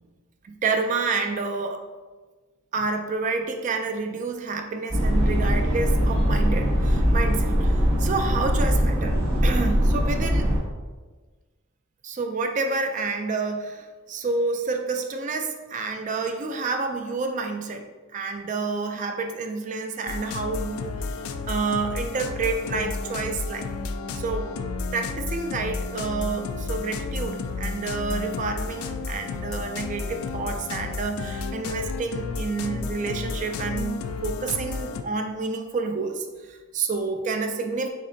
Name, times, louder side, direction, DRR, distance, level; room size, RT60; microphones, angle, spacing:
voice 1, 0.4-1.8 2.7-9.2 9.4-10.5 12.0-17.8 18.1-23.6 24.1-24.5 24.9-34.0 34.2-37.9, right 4 dB, 35° right, 5 dB, 0.3 m, -29 dB
sound 1, 4.9-10.6, equal, 75° right, 1.5 m, -21 dB
sound 2, 20.1-35.0, left 4 dB, 85° left, 0.3 m, -32 dB
5.3 x 3.7 x 2.6 m, 1.3 s
head